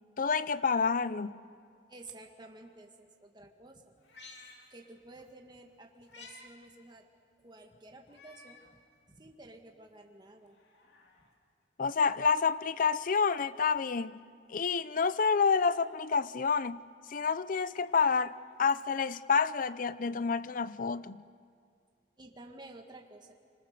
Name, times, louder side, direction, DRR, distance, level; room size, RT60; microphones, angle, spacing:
voice 1, 0.2-1.4 11.8-14.2 14.5-16.8 17.1-18.3 18.6-21.2, left 5 dB, 50° left, 0.6 m, -28 dB
voice 2, 1.9-3.9 4.7-7.1 7.4-8.8 9.1-10.6 22.2-23.3, right 2 dB, 25° right, 1.9 m, -52 dB
Meow, 4.0-5.3 5.7-6.5 6.9-7.0 8.0-8.7 9.2-9.3 10.3-11.3 12.9-13.9 15.2-16.0 17.5-19.2 20.4-20.5, left 3 dB, 90° left, 3.1 m, -57 dB
26.0 x 26.0 x 6.8 m
head